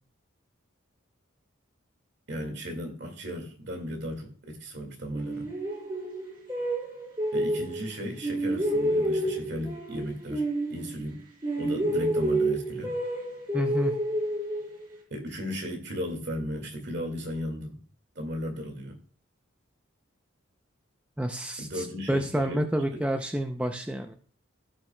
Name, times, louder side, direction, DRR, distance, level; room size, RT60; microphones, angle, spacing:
voice 1, 2.3-5.5 7.3-10.4 10.7-11.2 11.6-12.9 15.1-17.8 18.2-19.0 21.6-22.6 22.9-23.0, equal, 55° right, 4 dB, 2.0 m, -35 dB
sound 1, 5.1-7.9 8.2-11.2 11.4-14.9, right 1 dB, 25° right, 3.9 m, -29 dB
voice 2, 13.5-13.9 21.2-24.1, right 1 dB, 5° right, 4 dB, 0.5 m, -29 dB
16.0 x 5.9 x 2.2 m, 0.43 s
head